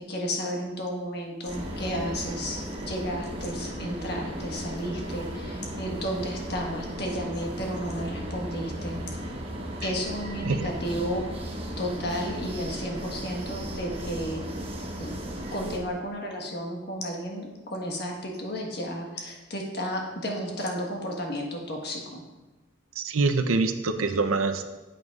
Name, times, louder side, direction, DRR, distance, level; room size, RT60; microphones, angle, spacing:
voice 1, 0.1-9.2 9.8-11.2 11.8-14.4 15.0-22.2, equal, 50° left, 0 dB, 1.4 m, -33 dB
sound 1, 1.5-15.8, equal, 30° right, 1.0 m, -36 dB
voice 2, 23.0-24.6, right 3 dB, 90° right, 8 dB, 0.6 m, -25 dB
9.1 x 7.9 x 2.4 m, 1.1 s
head